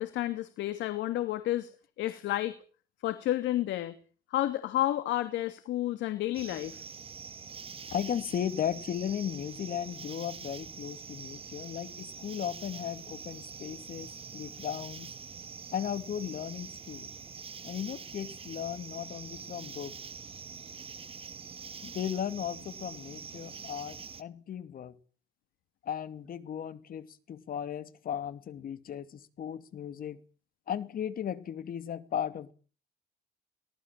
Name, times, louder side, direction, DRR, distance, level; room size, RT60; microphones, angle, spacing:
voice 1, 0.0-1.7 2.0-2.6 3.0-3.9 4.3-6.8, left 14 dB, 80° left, 11 dB, 2.6 m, -31 dB
sound 1, 6.3-24.2, right 6 dB, 30° right, 1.6 m, -45 dB
voice 2, 7.9-15.1 15.7-17.1 17.6-20.0 21.8-24.9 25.8-30.2 30.7-32.5, left 9 dB, 50° left, 13 dB, 2.5 m, -36 dB
24.0 x 18.5 x 7.5 m, 0.42 s
cardioid pair, 115°, 19 cm